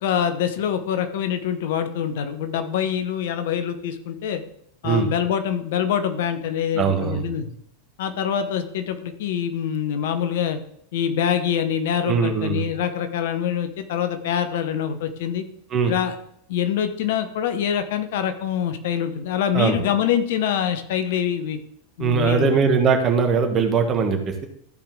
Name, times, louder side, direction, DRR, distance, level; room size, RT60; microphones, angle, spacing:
voice 1, 0.0-4.4 4.8-7.5 8.0-10.6 10.9-15.4 15.9-16.1 16.5-21.6 22.0-22.6, left 9 dB, 65° left, 9 dB, 1.0 m, -25 dB
voice 2, 6.7-7.2 12.1-12.6 15.7-16.0 19.5-19.8 22.0-24.5, right 5 dB, 35° right, 4 dB, 1.7 m, -20 dB
14.0 x 4.9 x 3.8 m, 0.69 s
figure-of-eight pair, 90°, 0 cm